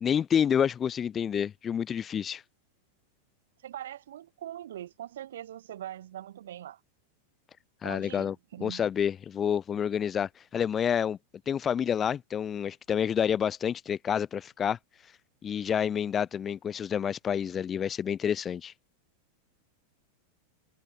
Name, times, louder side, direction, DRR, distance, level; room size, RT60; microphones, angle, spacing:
voice 1, 0.0-2.4 7.8-8.4 8.6-11.2 11.5-14.8 15.4-18.7, left 8 dB, 25° left, 2.0 m, -28 dB
voice 2, 3.6-6.8 7.8-8.8, right 12 dB, 60° right, 7.2 m, -42 dB
figure-of-eight pair, 90°, 0 cm